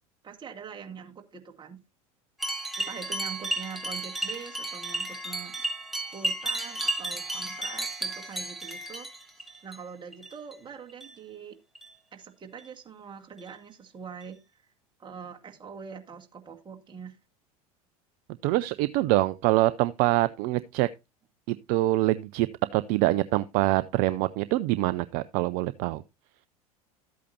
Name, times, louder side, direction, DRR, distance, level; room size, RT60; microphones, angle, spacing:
voice 1, 0.2-1.8 2.8-5.5 6.0-9.1 9.6-11.6 12.1-14.4 15.0-17.2, right 6 dB, 25° right, 2.0 m, -43 dB
sound 1, 2.4-9.8 10.1-10.5 10.9-11.2 11.7-11.9 12.6-12.7 13.4-13.5 14.2-14.3, right 2 dB, ahead, 2.1 m, -33 dB
voice 2, 18.4-20.9 21.5-22.5 22.7-26.0, right 17 dB, 50° right, 0.5 m, -25 dB
13.0 x 8.4 x 2.8 m
hypercardioid pair, 80°, 19 cm